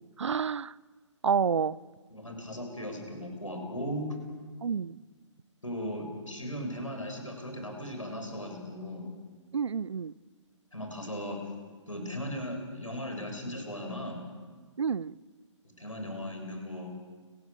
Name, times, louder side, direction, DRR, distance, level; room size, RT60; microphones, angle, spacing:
voice 1, 0.2-0.7 1.2-1.8 4.6-5.0 9.5-10.1 14.8-15.2, right 6 dB, 65° right, 23 dB, 0.6 m, -29 dB
voice 2, 2.1-4.1 5.6-9.1 10.7-11.4 11.9-14.2 15.8-16.9, equal, 90° left, 4 dB, 6.6 m, -37 dB
30.0 x 14.0 x 8.2 m, 1.5 s
figure-of-eight pair, 130°, 16 cm